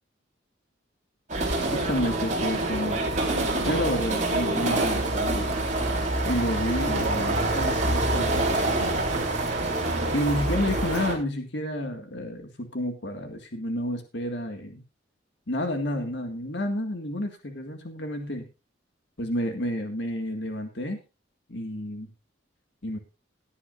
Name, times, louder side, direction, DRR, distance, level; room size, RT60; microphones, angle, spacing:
sound 1, 1.3-11.1, right 2 dB, 40° right, 4.0 m, -26 dB
voice 1, 1.7-3.2 3.5-5.6 6.3-9.0 10.1-14.8 15.5-18.5 19.2-21.0 21.5-22.1 22.8-23.0, left 1 dB, 65° left, 5 dB, 2.0 m, -30 dB
17.5 x 9.8 x 2.6 m, 0.29 s
head